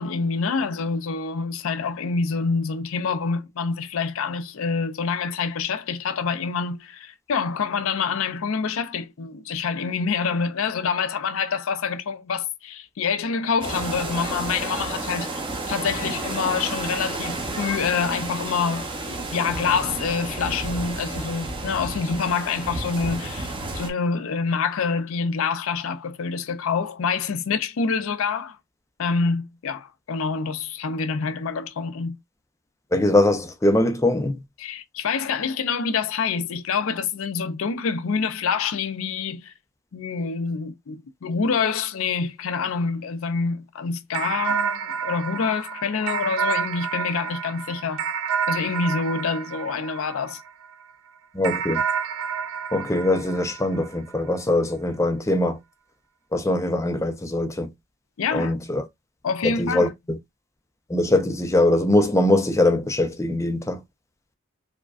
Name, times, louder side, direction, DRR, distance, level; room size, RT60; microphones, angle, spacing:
voice 1, 0.0-28.6 29.0-32.2 34.6-39.5 39.9-48.0 48.5-50.4 58.2-58.5 59.2-59.9, left 5 dB, 70° left, 0.4 m, -26 dB
sound 1, 13.6-23.9, right 2 dB, 25° right, 0.7 m, -31 dB
voice 2, 32.9-34.4 51.3-51.8 52.7-55.6 56.3-57.7 58.3-58.8 59.6-60.2 60.9-63.8, left 1 dB, 15° left, 0.5 m, -22 dB
sound 2, 44.1-50.7 51.4-54.2, right 7 dB, 80° right, 0.5 m, -29 dB
4.8 x 2.2 x 2.4 m
head